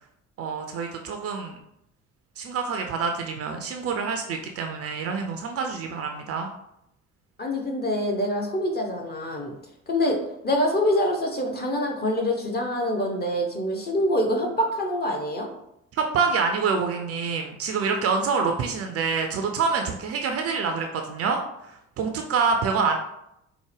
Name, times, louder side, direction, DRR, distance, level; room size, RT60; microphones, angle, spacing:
voice 1, 0.4-1.6 2.4-6.5 15.9-23.0, right 5 dB, 40° right, 4 dB, 0.5 m, -26 dB
voice 2, 7.4-9.5 9.9-15.5, left 1 dB, 25° left, 1 dB, 0.8 m, -25 dB
4.6 x 2.1 x 3.3 m, 0.81 s
figure-of-eight pair, 45°, 38 cm